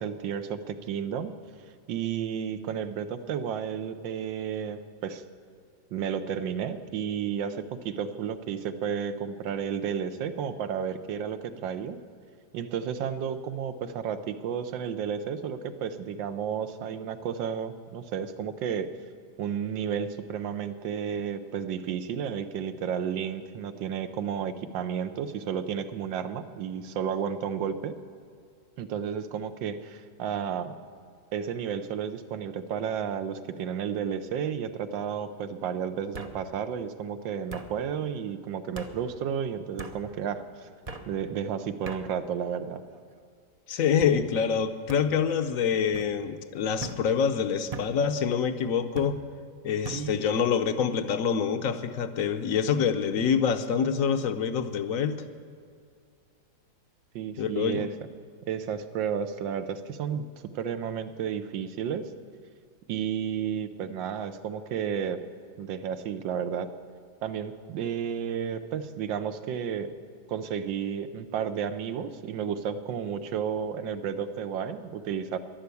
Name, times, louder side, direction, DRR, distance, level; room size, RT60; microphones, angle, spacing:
voice 1, 0.0-1.3 1.9-5.2 5.9-12.0 12.5-18.9 19.4-27.9 28.8-30.7 31.3-40.7 41.1-42.8 49.9-50.2 57.1-57.9 58.4-60.3 60.5-62.1 62.9-65.2 65.6-66.7 67.2-69.9 70.3-75.4, right 8 dB, 90° right, 10 dB, 1.5 m, -32 dB
sound 1, 32.7-33.1 33.5-34.0 35.1-35.2 36.1-36.4 37.5-37.7 38.7-38.9 39.8-40.0 40.8-41.1 41.8-42.0 42.8-43.2 44.0-44.2 44.9-45.0 45.9-46.1 46.8-47.0 47.7-47.9 48.9-49.1 49.8-50.0, right 3 dB, 50° right, 0.4 m, -40 dB
voice 2, 43.7-49.2 49.6-55.2 57.4-57.9, left 7 dB, 60° left, 9 dB, 0.9 m, -26 dB
11.5 x 11.5 x 8.3 m, 2.2 s
omnidirectional pair, 2.0 m